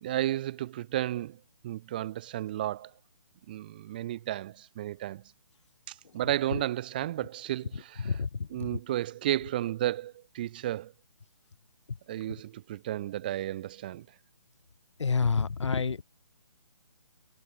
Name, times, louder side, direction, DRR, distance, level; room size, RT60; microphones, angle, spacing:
voice 1, 0.0-2.9 3.5-5.2 5.9-8.2 8.5-10.9 12.1-14.0, right 13 dB, 20° right, 1.0 m, -33 dB
voice 2, 8.0-8.5 15.0-16.0, left 5 dB, 80° left, 1.9 m, -28 dB
hypercardioid pair, 175°, 15 cm